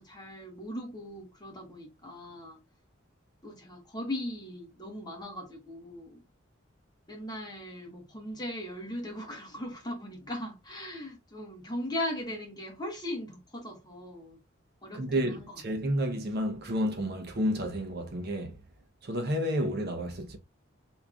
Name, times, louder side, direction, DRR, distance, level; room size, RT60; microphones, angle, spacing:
voice 1, 0.0-2.6 3.4-6.2 7.1-14.4 14.8-15.3, left 1 dB, 20° left, 1.4 m, -39 dB
voice 2, 14.9-18.6 19.0-20.4, equal, 50° right, 0.9 m, -30 dB
4.4 x 3.5 x 2.4 m
head